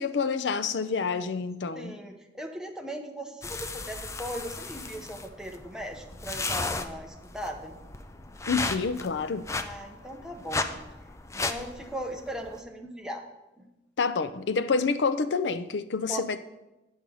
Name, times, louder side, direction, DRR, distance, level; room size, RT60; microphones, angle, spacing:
voice 1, 0.0-2.0 8.5-9.5 14.0-16.4, left 5 dB, 90° left, 0.5 m, -28 dB
voice 2, 1.7-7.8 9.5-10.8 11.3-13.2 13.6-13.7 16.1-16.3, equal, 5° right, 0.9 m, -38 dB
sound 1, 3.4-12.6, left 3 dB, 15° left, 0.5 m, -35 dB
8.8 x 5.3 x 6.3 m
head